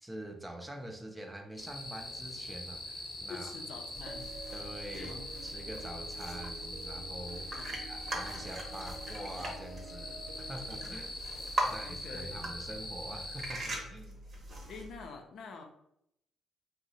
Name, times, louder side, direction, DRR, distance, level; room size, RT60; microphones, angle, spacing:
voice 1, 0.0-3.5 4.5-5.1 5.4-11.2 11.7-14.2, right 1 dB, 10° right, 4 dB, 0.5 m, -45 dB
sound 1, 1.6-13.5, left 1 dB, 35° left, 0.7 m, -43 dB
voice 2, 3.3-4.4 4.9-5.3 7.5-7.8 11.6-12.4 14.7-15.6, left 4 dB, 70° left, 3 dB, 0.5 m, -46 dB
sound 2, 3.9-15.1, right 1 dB, 40° right, 0.8 m, -42 dB
sound 3, 4.1-10.8, right 4 dB, 70° right, 0.5 m, -50 dB
2.6 x 2.0 x 4.0 m, 0.78 s
cardioid pair, 90°, 0 cm